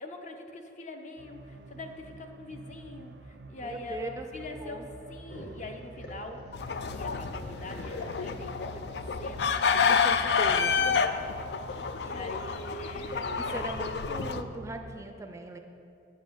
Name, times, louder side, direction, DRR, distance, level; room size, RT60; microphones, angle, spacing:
voice 1, 0.0-6.4 6.9-10.0 10.8-13.5, left 2 dB, 40° left, 5 dB, 0.8 m, -43 dB
sound 1, 1.2-15.1, right 2 dB, 75° right, 0.5 m, -49 dB
voice 2, 3.6-4.9 9.9-10.8 12.0-12.2 12.9-15.6, right 2 dB, 15° right, 5 dB, 0.4 m, -40 dB
Growling, 5.3-11.1, equal, 80° left, 1.6 m, -48 dB
sound 2, 6.5-14.4, left 5 dB, 65° left, 0.4 m, -29 dB
9.2 x 5.3 x 7.4 m, 2.7 s
head